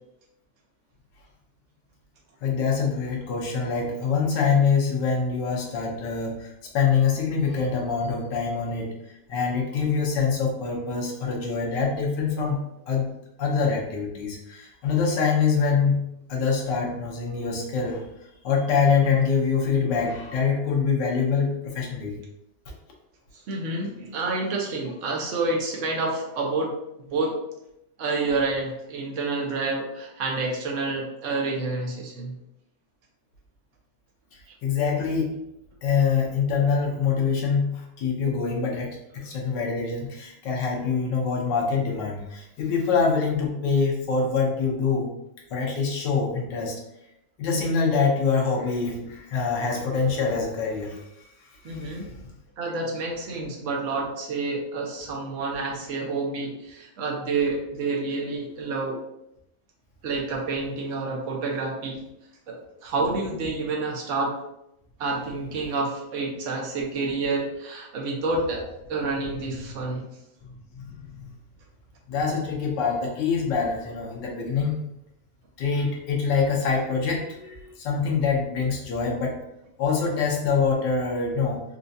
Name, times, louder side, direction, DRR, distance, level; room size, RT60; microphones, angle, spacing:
voice 1, 2.4-8.9 9.3-12.6 12.9-13.1 13.4-18.1 18.4-22.2 34.6-35.3 35.8-45.1 45.5-46.8 47.4-51.3 51.7-52.0 70.7-71.1 72.1-74.8 75.6-79.4 79.8-81.6, left 5 dB, 80° left, -1 dB, 1.5 m, -25 dB
voice 2, 23.3-26.7 27.1-27.4 28.0-32.4 51.6-52.1 52.6-59.0 60.0-62.0 62.5-64.3 65.0-68.6 68.9-70.0, right 3 dB, 55° right, -1 dB, 1.0 m, -28 dB
4.4 x 2.4 x 2.6 m, 0.83 s
omnidirectional pair, 1.9 m